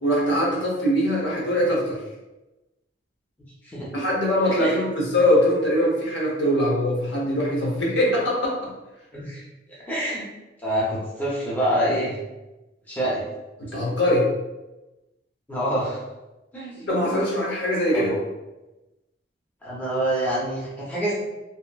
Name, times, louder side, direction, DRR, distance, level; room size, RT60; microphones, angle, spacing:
voice 1, 0.0-2.0 3.9-8.7 13.6-14.3 16.9-18.1, equal, 60° left, -4 dB, 0.8 m, -22 dB
voice 2, 9.9-10.2 10.6-12.2 12.9-13.2 15.5-16.0 16.5-16.7 17.9-18.2 19.6-21.1, right 1 dB, 10° left, -8 dB, 0.6 m, -26 dB
2.9 x 2.5 x 2.3 m, 1.0 s
head